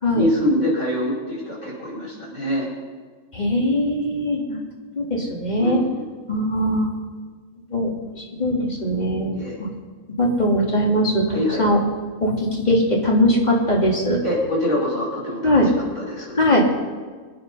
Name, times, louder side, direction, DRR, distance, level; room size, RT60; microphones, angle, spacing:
voice 1, 0.1-2.7 5.6-6.1 9.3-9.6 11.3-11.7 14.2-15.7 16.0-16.6, left 1 dB, 80° left, -6 dB, 5.6 m, -25 dB
voice 2, 3.3-4.6 5.0-5.8 6.3-6.9 7.7-7.9 8.4-9.3 9.6-9.7 10.2-11.8 12.2-14.2 15.4-15.7 16.4-16.6, equal, 30° left, -2 dB, 2.8 m, -20 dB
24.0 x 9.8 x 5.7 m, 1.5 s
omnidirectional pair, 1.4 m